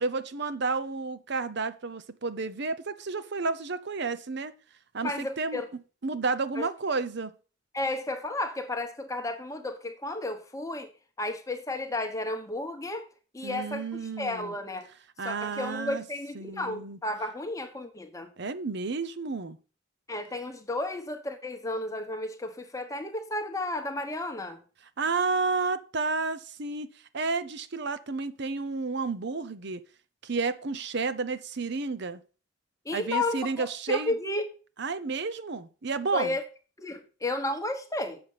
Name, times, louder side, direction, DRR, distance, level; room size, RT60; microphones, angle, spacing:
voice 1, 0.0-4.5 4.9-5.6 6.0-7.3 13.4-14.5 15.2-16.0 16.3-17.0 18.4-19.6 25.0-26.9 27.1-29.8 30.2-32.2 32.9-34.1 34.8-36.4, right 4 dB, 55° right, 0.8 m, -31 dB
voice 2, 5.0-5.7 6.6-6.7 7.7-10.9 11.2-13.0 13.3-14.9 15.2-18.3 20.1-24.6 32.8-34.4 36.1-36.4 36.8-38.2, left 2 dB, 15° left, 1.2 m, -33 dB
7.7 x 6.8 x 5.7 m
head